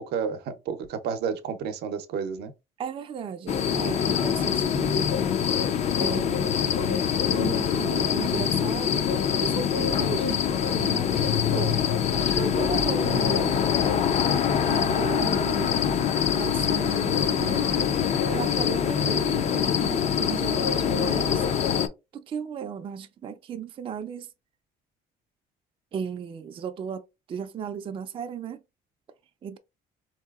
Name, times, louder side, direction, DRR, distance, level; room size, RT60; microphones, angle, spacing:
voice 1, 0.0-2.5 15.2-15.7, right 6 dB, 75° right, 0.6 m, -31 dB
voice 2, 2.8-5.1 6.0-14.1 14.6-15.8 16.3-17.9 18.3-21.5 22.1-24.3 25.9-28.6 29.4-29.6, right 7 dB, 30° right, 0.4 m, -35 dB
sound 1, 3.5-21.9, left 8 dB, 40° left, 0.4 m, -24 dB
3.8 x 2.7 x 2.3 m
cardioid pair, 110°, 17 cm